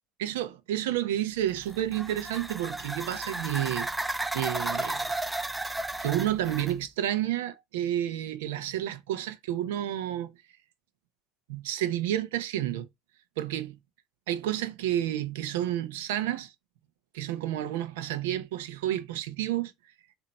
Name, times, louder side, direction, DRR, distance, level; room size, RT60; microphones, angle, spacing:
voice 1, 0.2-5.1 6.0-10.3 11.5-12.9 13.4-13.8 14.3-16.5 17.1-19.7, right 12 dB, 85° right, 1.0 m, -30 dB
sound 1, 1.5-6.8, right 2 dB, 10° right, 0.5 m, -34 dB
7.6 x 2.9 x 4.4 m
supercardioid pair, 105°, 0 cm